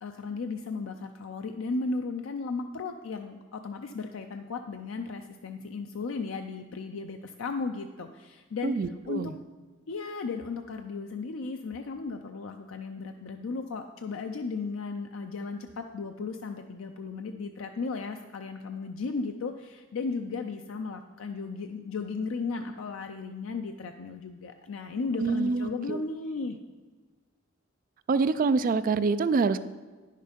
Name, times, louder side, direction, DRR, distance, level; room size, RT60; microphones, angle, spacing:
voice 1, 0.0-8.7 9.1-9.3 9.9-26.6, left 4 dB, 85° left, 6 dB, 0.5 m, -35 dB
voice 2, 8.6-9.3 25.2-26.0 28.1-29.6, right 4 dB, 45° right, 13 dB, 0.3 m, -26 dB
9.8 x 6.5 x 5.1 m, 1.3 s
head